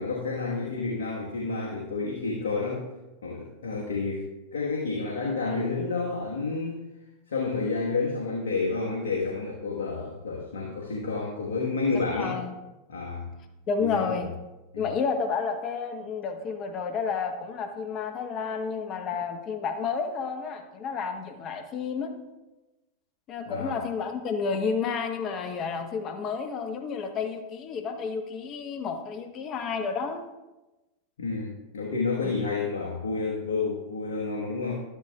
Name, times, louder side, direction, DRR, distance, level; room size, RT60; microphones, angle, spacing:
voice 1, 0.0-2.8 3.2-6.8 7.3-12.4 12.9-13.3 13.8-14.2 14.7-14.9 23.5-23.8 31.2-34.8, left 4 dB, 85° left, -2 dB, 1.3 m, -30 dB
voice 2, 12.1-12.5 13.7-14.3 14.8-22.1 23.3-30.2, left 5 dB, 40° left, 6 dB, 1.0 m, -31 dB
12.0 x 10.5 x 2.3 m, 1.1 s
hypercardioid pair, 100°, 0 cm